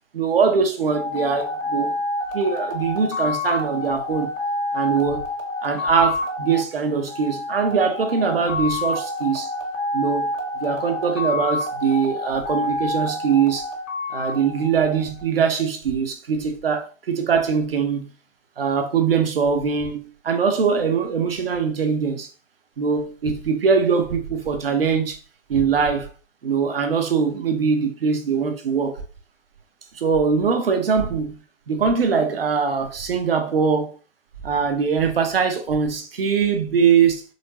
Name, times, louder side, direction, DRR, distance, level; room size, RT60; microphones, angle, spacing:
voice 1, 0.1-2.0 2.3-4.3 4.7-5.3 5.6-9.5 9.9-13.7 14.1-18.1 18.6-22.3 22.8-25.2 25.5-26.1 26.4-29.0 29.9-31.4 31.7-33.9 34.4-37.2, right 6 dB, 45° right, 0.9 m, -22 dB
sound 1, 0.9-15.4, left 2 dB, 75° left, 1.7 m, -28 dB
4.3 x 3.7 x 2.9 m
figure-of-eight pair, 130°, 39 cm